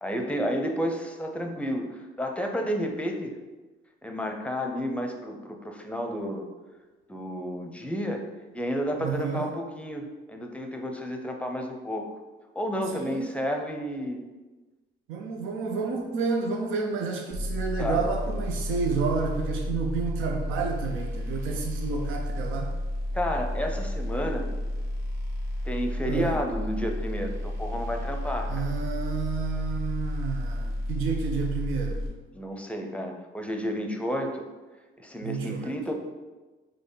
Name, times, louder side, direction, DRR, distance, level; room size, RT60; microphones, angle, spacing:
voice 1, 0.0-3.4 4.0-6.4 7.1-8.2 8.5-12.1 12.6-14.2 17.8-18.0 23.1-24.5 25.6-28.7 32.3-34.4 35.0-35.9, equal, 5° left, 4 dB, 0.6 m, -31 dB
voice 2, 9.0-9.5 12.9-13.4 15.1-22.7 26.0-26.4 28.5-31.9 35.2-35.7, right 5 dB, 85° right, 2 dB, 0.6 m, -30 dB
sound 1, 17.3-32.1, left 1 dB, 50° right, 1.3 m, -31 dB
4.1 x 3.3 x 3.8 m, 1.2 s
cardioid pair, 90°, 20 cm